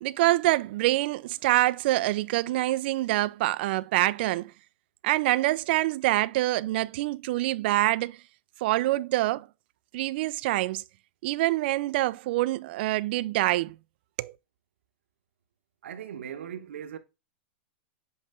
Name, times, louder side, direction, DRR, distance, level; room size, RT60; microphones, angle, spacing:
voice 1, 0.0-4.5 5.0-8.2 8.6-9.5 9.9-10.8 11.2-13.8 14.2-14.3, right 17 dB, 55° right, 0.4 m, -25 dB
voice 2, 15.8-17.0, right 9 dB, 80° right, 1.1 m, -39 dB
7.9 x 3.2 x 3.7 m
hypercardioid pair, 135°, 7 cm